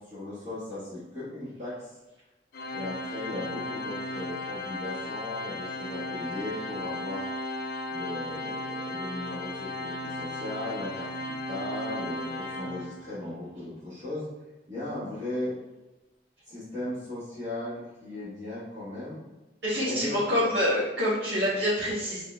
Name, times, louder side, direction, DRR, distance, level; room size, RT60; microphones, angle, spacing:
voice 1, 0.0-2.0 2.7-7.2 7.9-14.2 14.7-15.5 16.4-19.2 19.7-20.4, left 1 dB, 40° right, -11 dB, 1.4 m, -37 dB
Organ, 2.5-13.3, left 1 dB, 55° left, 0.4 m, -35 dB
voice 2, 19.6-22.2, equal, 75° right, -11 dB, 1.4 m, -26 dB
3.8 x 3.7 x 3.2 m, 1.1 s
head